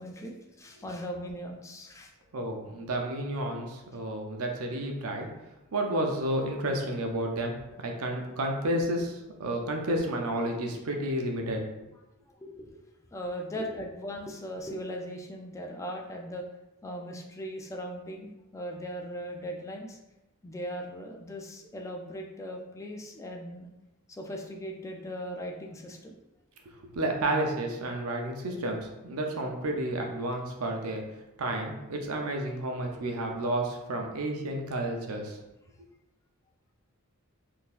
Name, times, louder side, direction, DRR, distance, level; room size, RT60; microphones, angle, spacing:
voice 1, 0.0-2.1 12.2-12.8 13.1-16.4 16.8-20.0 20.4-23.7 24.1-26.2, equal, 15° left, 1 dB, 0.3 m, -39 dB
voice 2, 2.3-5.3 5.7-11.6 26.9-31.0 31.4-35.4, right 1 dB, 80° right, 2 dB, 0.6 m, -31 dB
3.7 x 2.7 x 2.5 m, 0.97 s
head